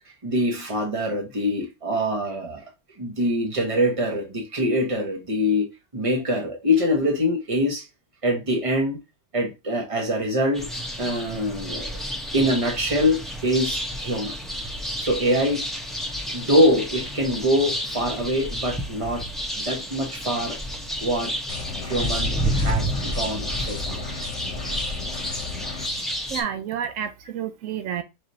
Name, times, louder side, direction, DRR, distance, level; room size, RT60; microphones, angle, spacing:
voice 1, 0.2-2.6 3.0-5.7 5.9-7.8 8.2-9.0 9.3-10.6 11.0-11.9 12.3-14.4 15.0-15.6 16.3-19.2 19.6-20.6 21.0-21.3 21.8-24.0, equal, 25° right, 1.3 m, -24 dB
sound 1, 10.5-26.4, equal, ahead, 0.8 m, -30 dB
sound 2, 21.5-25.9, left 5 dB, 65° left, 1.1 m, -35 dB
voice 2, 26.3-28.0, right 9 dB, 85° right, 1.0 m, -30 dB
4.8 x 3.3 x 2.8 m
omnidirectional pair, 1.3 m